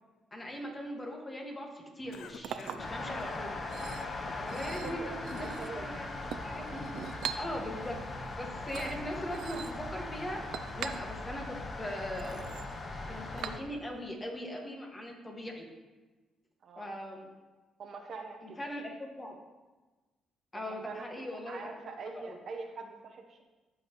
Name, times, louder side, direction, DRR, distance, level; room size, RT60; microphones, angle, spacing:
voice 1, 0.3-3.6 4.4-6.1 6.4-6.9 7.4-8.0 8.4-10.4 10.8-12.4 13.1-15.7 16.8-17.3 18.6-19.3 20.5-21.7 22.2-22.4, equal, 20° left, 1 dB, 1.8 m, -40 dB
Chink clink, 2.0-14.0, right 8 dB, 75° right, 0.5 m, -44 dB
Cough, 2.1-2.9 3.2-3.4 4.0-4.4 4.9-5.6, left 8 dB, 80° left, 0.4 m, -51 dB
sound 1, 2.8-13.6, left 2 dB, 40° left, 1.1 m, -40 dB
voice 2, 4.6-5.9 16.6-16.9 17.8-18.6 20.5-23.4, right 4 dB, 60° right, 4 dB, 1.0 m, -44 dB
14.5 x 5.8 x 3.1 m, 1.2 s
cardioid pair, 90°, 0 cm